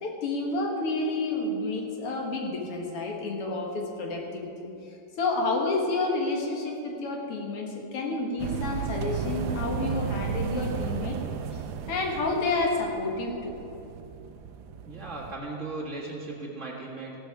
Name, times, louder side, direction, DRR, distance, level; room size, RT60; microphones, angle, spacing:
voice 1, 0.0-4.7 5.2-11.2 11.5-11.6 11.9-13.5, left 3 dB, 85° left, 1 dB, 2.5 m, -29 dB
sound 1, 8.4-15.3, right 7 dB, 70° right, 1.0 m, -34 dB
voice 2, 14.8-17.2, right 3 dB, 35° right, -3 dB, 1.8 m, -37 dB
15.5 x 12.5 x 4.7 m, 2.7 s
omnidirectional pair, 2.4 m